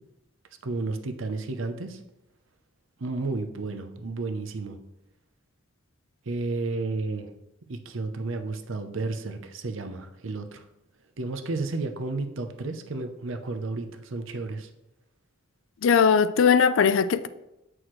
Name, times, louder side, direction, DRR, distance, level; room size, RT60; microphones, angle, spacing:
voice 1, 0.6-2.0 3.0-4.8 6.3-7.3 7.7-10.6 11.2-14.7, right 3 dB, 75° right, 0.7 m, -32 dB
voice 2, 15.8-17.3, left 6 dB, 75° left, 0.4 m, -19 dB
7.7 x 6.2 x 3.1 m
head